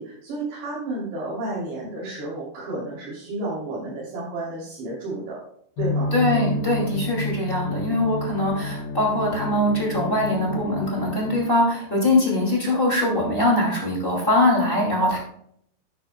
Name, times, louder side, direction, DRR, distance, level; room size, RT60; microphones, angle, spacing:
voice 1, 0.0-5.4 5.8-6.1, right 2 dB, 75° right, -8 dB, 5.3 m, -31 dB
sound 1, 5.8-11.4, left 2 dB, 85° left, 2.8 m, -29 dB
voice 2, 6.1-15.2, left 1 dB, 20° left, -3 dB, 1.7 m, -22 dB
10.5 x 10.5 x 2.3 m, 0.68 s
omnidirectional pair, 5.0 m